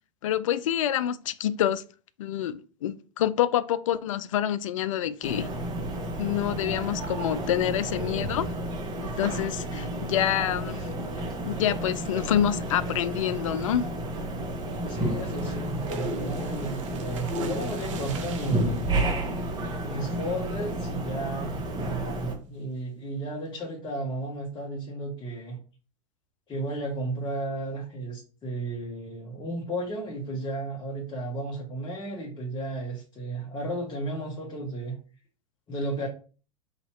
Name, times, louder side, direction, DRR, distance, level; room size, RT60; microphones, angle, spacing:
voice 1, 0.2-1.8 2.2-5.5 6.2-8.5 9.0-10.9 11.5-13.9, left 11 dB, 75° left, 0.4 m, -27 dB
sound 1, 5.2-22.3, right 1 dB, 25° right, 1.0 m, -31 dB
sound 2, 14.4-20.2 20.6-20.9 21.2-21.3 21.7-22.0, right 7 dB, 70° right, 0.7 m, -46 dB
voice 2, 14.8-18.8 19.8-25.6 26.5-35.0 35.7-36.1, right 1 dB, 25° left, 1.2 m, -33 dB
2.9 x 2.8 x 4.3 m
hypercardioid pair, 85°, 17 cm